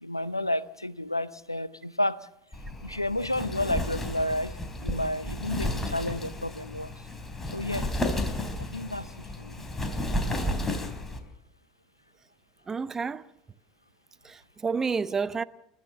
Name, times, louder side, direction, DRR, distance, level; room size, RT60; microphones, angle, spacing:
voice 1, 0.0-2.3 2.8-4.5 4.8-6.9 7.5-7.9 8.6-9.6, left 1 dB, 90° left, 0.7 m, -31 dB
Wind, 2.5-11.2, left 1 dB, 15° left, 4.0 m, -32 dB
voice 2, 12.7-13.3 14.2-15.4, right 5 dB, 20° right, 0.9 m, -30 dB
30.0 x 14.0 x 6.8 m
figure-of-eight pair, 75°, 2 cm